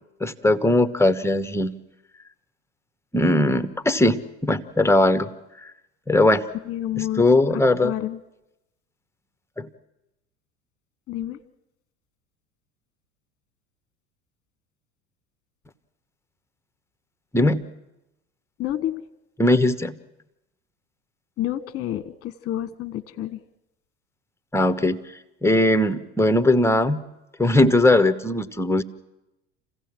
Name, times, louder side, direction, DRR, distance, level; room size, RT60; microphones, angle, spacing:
voice 1, 0.2-1.7 3.1-5.3 5.6-5.7 6.1-6.5 7.2-7.9 9.6-9.7 17.3-17.6 19.4-20.0 24.5-25.0 25.4-27.0 27.4-28.8, left 1 dB, 5° left, 10 dB, 1.2 m, -19 dB
voice 2, 6.6-7.3 7.8-8.2 11.1-11.4 18.6-19.0 21.4-23.4, left 12 dB, 40° left, 12 dB, 1.3 m, -29 dB
27.5 x 16.0 x 7.6 m, 0.94 s
hypercardioid pair, 80°, 35 cm